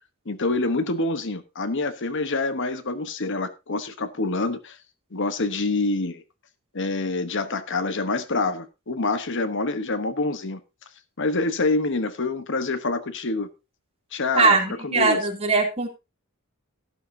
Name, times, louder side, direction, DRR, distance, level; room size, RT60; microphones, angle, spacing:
voice 1, 0.3-4.8 5.1-6.2 6.7-10.6 11.2-13.5 14.1-14.6 14.8-15.2, left 3 dB, 60° left, 1.1 m, -26 dB
voice 2, 14.4-15.9, right 4 dB, 30° right, 2.9 m, -21 dB
12.5 x 12.5 x 2.8 m
head